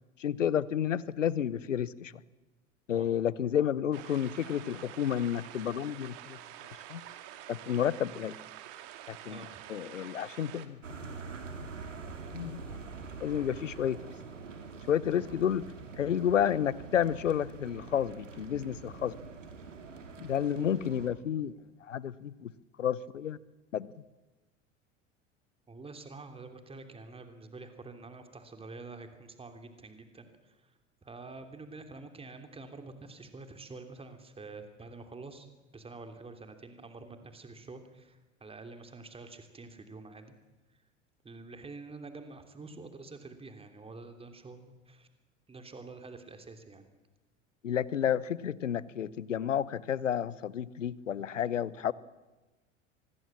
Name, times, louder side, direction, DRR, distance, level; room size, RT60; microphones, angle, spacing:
voice 1, 0.2-2.1 2.9-6.4 6.9-7.0 7.5-8.3 9.1-11.1 11.6-11.7 12.3-12.6 13.2-14.1 14.9-15.6 16.0-19.2 20.2-21.5 21.8-22.5 22.8-23.4 23.7-23.9 47.6-51.9, left 9 dB, 75° left, 21 dB, 0.9 m, -31 dB
sound 1, 3.9-10.7, right 12 dB, 50° right, 2.4 m, -48 dB
voice 2, 9.3-9.6 15.1-15.2 25.7-35.5 35.7-40.3 40.7-40.8 41.2-45.1 45.5-46.9, right 3 dB, 15° right, 7 dB, 3.1 m, -47 dB
sound 2, 10.8-21.1, right 4 dB, 80° right, 2.7 m, -45 dB
25.5 x 20.5 x 7.5 m, 1.1 s
figure-of-eight pair, 75°, 37 cm